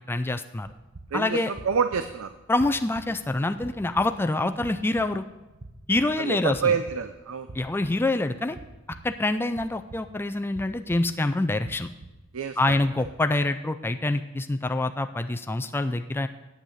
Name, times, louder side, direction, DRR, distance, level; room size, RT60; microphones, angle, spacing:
voice 1, 0.1-0.7 1.1-1.5 2.5-5.3 5.9-6.7 7.5-8.6 9.0-11.9 12.6-16.3, left 2 dB, 10° left, 8 dB, 0.3 m, -26 dB
sound 1, 0.6-13.5, right 2 dB, 50° right, 1.0 m, -48 dB
voice 2, 1.1-2.3 6.2-7.5 12.3-13.1, right 6 dB, 75° right, 9 dB, 0.5 m, -28 dB
9.0 x 8.1 x 7.0 m, 1.1 s
head